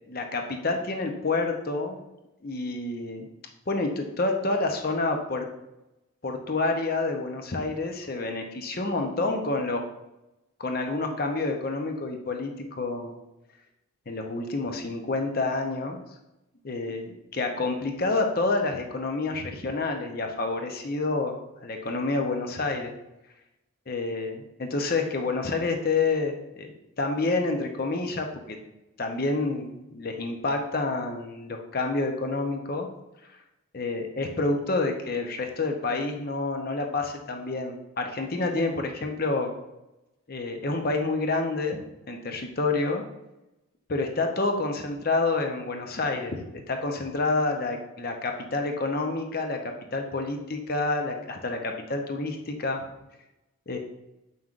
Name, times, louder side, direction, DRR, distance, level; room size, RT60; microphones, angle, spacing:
voice 1, 0.1-2.0 2.4-3.3 3.7-5.5 6.2-9.8 10.6-12.5 12.8-13.2 14.1-16.0 16.6-22.9 23.9-26.7 27.0-28.6 29.0-32.9 33.7-39.5 40.3-41.8 42.1-43.0 43.9-52.8 53.7-53.8, left 3 dB, 45° left, 4 dB, 0.7 m, -28 dB
7.6 x 5.5 x 2.4 m, 0.94 s
head